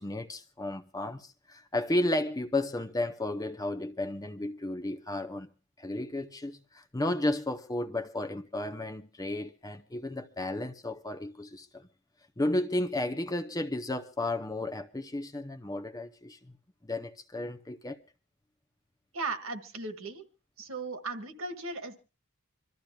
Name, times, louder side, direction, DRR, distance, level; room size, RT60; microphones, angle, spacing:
voice 1, 0.0-5.5 5.8-11.9 12.4-16.5 16.8-18.0, left 1 dB, 15° left, 0.7 m, -33 dB
voice 2, 19.1-20.2 20.6-22.0, right 3 dB, 65° right, 1.7 m, -37 dB
26.5 x 13.5 x 2.3 m
head